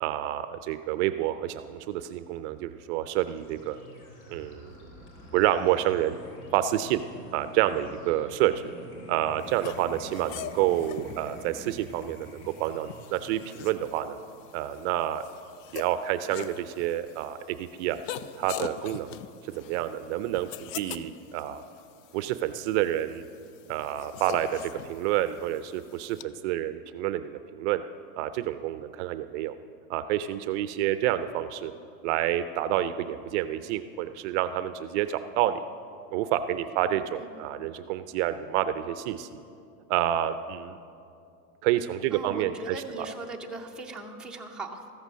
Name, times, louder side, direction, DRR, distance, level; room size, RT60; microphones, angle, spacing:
voice 1, 0.0-3.8 4.3-4.7 5.3-6.2 6.5-7.0 7.3-8.7 9.1-14.2 14.5-15.2 15.7-18.0 18.3-19.2 19.5-21.6 22.1-23.2 23.7-27.8 28.2-29.6 29.9-31.7 32.0-35.6 36.1-39.4 39.9-40.8 41.6-43.1, right 12 dB, 50° right, 12 dB, 0.5 m, -28 dB
sound 1, 3.2-16.3 17.2-19.8, left 1 dB, 80° left, 3.2 m, -52 dB
sound 2, 4.4-11.7, equal, 35° left, 1.8 m, -48 dB
sound 3, 9.4-26.2, left 11 dB, 60° left, 0.6 m, -44 dB
voice 2, 36.7-37.5 42.1-44.9, right 3 dB, ahead, -1 dB, 0.6 m, -40 dB
14.5 x 8.0 x 6.2 m, 2.5 s
supercardioid pair, 135°, 44 cm